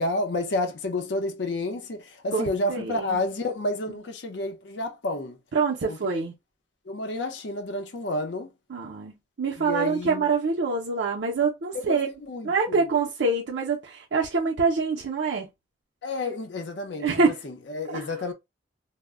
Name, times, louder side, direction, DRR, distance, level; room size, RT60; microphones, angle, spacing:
voice 1, 0.0-5.4 5.9-6.0 6.9-8.5 9.5-10.3 11.7-12.9 16.0-18.3, left 2 dB, 70° left, 0.6 m, -30 dB
voice 2, 2.3-3.2 5.5-6.3 8.7-12.1 12.4-15.5 17.0-17.3 17.9-18.1, right 4 dB, 75° right, 0.5 m, -25 dB
2.1 x 2.0 x 3.5 m
head